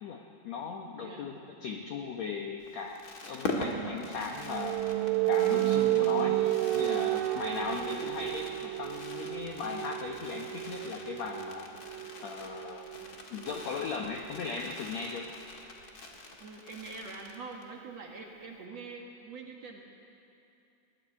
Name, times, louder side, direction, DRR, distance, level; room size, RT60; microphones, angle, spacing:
voice 1, 0.0-4.8 5.3-6.4 6.7-11.7 12.2-12.9 13.3-15.3, left 5 dB, 70° left, 2 dB, 1.6 m, -38 dB
voice 2, 1.0-1.3 7.6-7.8 16.4-19.8, right 4 dB, 50° right, 0 dB, 2.3 m, -44 dB
Fireworks, 2.6-17.8 18.1-18.2 18.4-18.6, left 2 dB, 40° left, 1.5 m, -43 dB
sound 1, 3.7-15.2, right 16 dB, 80° right, 2.0 m, -32 dB
21.5 x 14.5 x 9.8 m, 2.7 s
omnidirectional pair, 4.5 m